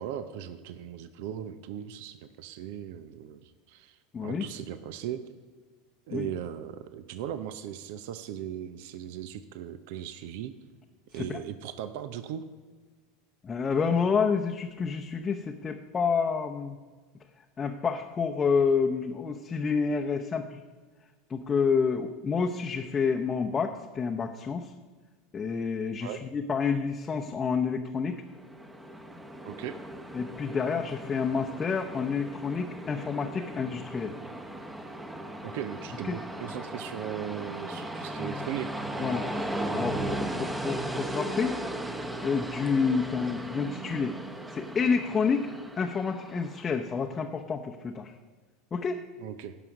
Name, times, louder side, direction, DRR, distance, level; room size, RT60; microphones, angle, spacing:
voice 1, 0.0-5.2 6.1-10.5 11.1-12.4 26.0-26.2 29.4-29.8 35.4-38.9 49.2-49.6, right 10 dB, 55° right, 12 dB, 0.6 m, -38 dB
voice 2, 4.1-4.5 6.1-6.3 11.2-11.4 13.4-16.8 17.6-20.6 21.3-24.7 25.3-28.2 30.1-34.2 36.1-36.2 39.0-41.6 42.2-44.2 44.5-45.5 45.8-48.1 48.7-49.0, left 5 dB, 25° left, 2 dB, 0.8 m, -29 dB
Train, 28.2-46.8, right 1 dB, 10° right, 1.0 m, -37 dB
16.5 x 6.0 x 5.3 m, 1.4 s
figure-of-eight pair, 80°, 0 cm